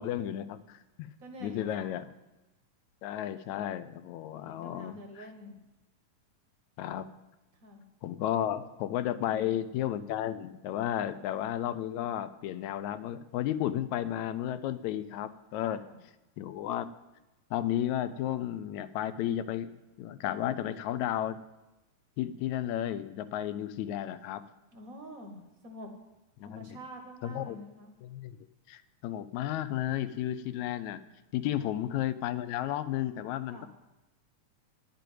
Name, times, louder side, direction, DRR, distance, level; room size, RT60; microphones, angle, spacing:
voice 1, 0.0-1.1 1.4-2.0 3.0-5.3 6.8-7.1 8.0-15.8 16.4-16.9 17.5-21.4 22.2-24.4 26.4-26.7 27.2-27.6 28.0-28.4 28.7-31.0 31.3-33.7, left 11 dB, 80° left, 13 dB, 1.8 m, -33 dB
voice 2, 1.2-2.0 4.4-5.6 7.6-7.8 9.1-9.5 15.6-16.0 24.7-25.9 26.4-27.9 31.6-31.8 33.5-33.7, left 1 dB, 45° right, 3 dB, 1.1 m, -47 dB
10.5 x 6.8 x 9.1 m, 1.0 s
omnidirectional pair, 3.5 m